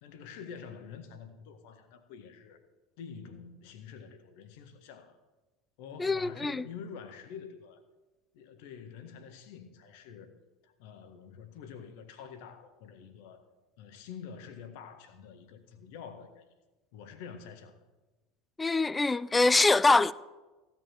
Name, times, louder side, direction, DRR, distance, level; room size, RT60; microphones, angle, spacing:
voice 1, 0.0-2.6 3.0-5.2 5.8-7.8 8.3-10.4 10.6-13.4 13.8-16.5 16.9-17.8, left 7 dB, 55° left, 1.7 m, -47 dB
voice 2, 6.0-6.6 18.6-20.1, left 3 dB, 15° left, 0.4 m, -24 dB
16.0 x 6.0 x 9.3 m
figure-of-eight pair, 75°, 0 cm